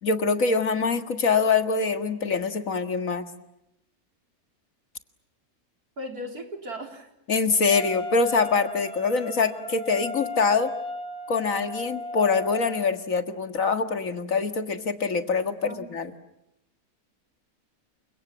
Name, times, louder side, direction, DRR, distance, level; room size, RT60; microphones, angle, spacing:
voice 1, 0.0-3.3 7.3-10.7 11.3-16.1, left 4 dB, 60° left, 8 dB, 2.2 m, -24 dB
voice 2, 6.0-7.1 15.7-15.9, equal, 85° right, 4 dB, 4.4 m, -37 dB
Wind instrument woodwind instrument, 7.7-12.9, left 2 dB, 5° left, 3.4 m, -35 dB
29.5 x 26.0 x 7.4 m, 0.85 s
omnidirectional pair, 1.6 m